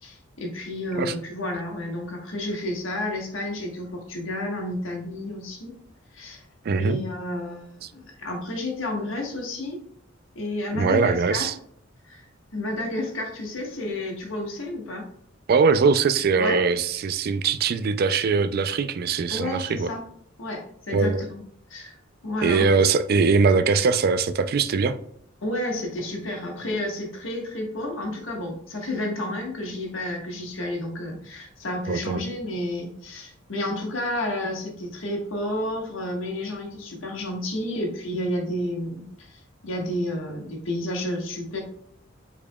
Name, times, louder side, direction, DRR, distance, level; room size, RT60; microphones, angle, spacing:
voice 1, 0.0-5.7 6.1-6.4 6.8-9.8 10.3-11.5 12.0-12.2 12.5-15.1 16.4-16.6 19.3-20.0 20.4-21.4 21.7-22.0 22.2-22.7 25.4-41.6, left 1 dB, 80° left, 1.4 m, -31 dB
voice 2, 6.7-7.0 10.7-11.5 15.5-19.9 20.9-21.2 22.4-25.0 31.9-32.2, right 5 dB, 50° right, 0.4 m, -21 dB
5.7 x 4.2 x 2.2 m
head